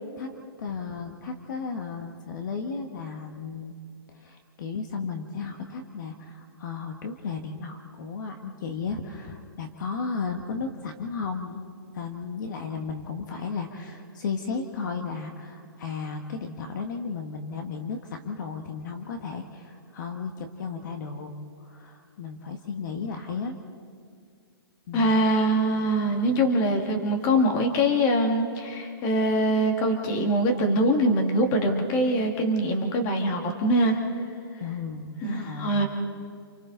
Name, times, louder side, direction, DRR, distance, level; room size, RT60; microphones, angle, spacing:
voice 1, 0.2-3.7 4.1-11.6 11.9-21.3 21.6-23.5 24.9-25.2 34.6-35.8, left 5 dB, 45° left, 4 dB, 1.6 m, -34 dB
voice 2, 24.9-34.0 35.2-35.8, equal, 25° left, 3 dB, 2.1 m, -23 dB
29.5 x 29.0 x 4.0 m, 2.2 s
hypercardioid pair, 160°, 13 cm